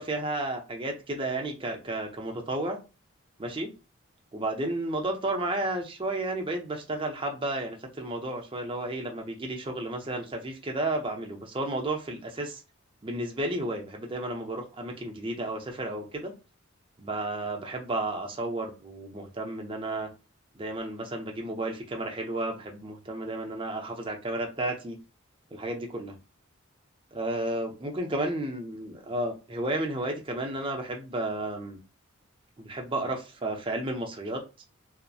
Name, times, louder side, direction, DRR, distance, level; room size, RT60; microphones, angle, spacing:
voice 1, 0.0-2.8 3.4-3.7 4.3-12.6 13.0-16.3 17.0-20.1 20.5-25.0 25.5-26.1 27.1-31.8 32.6-34.4, right 2 dB, 25° right, 2 dB, 0.5 m, -32 dB
2.6 x 2.0 x 2.3 m, 0.29 s
head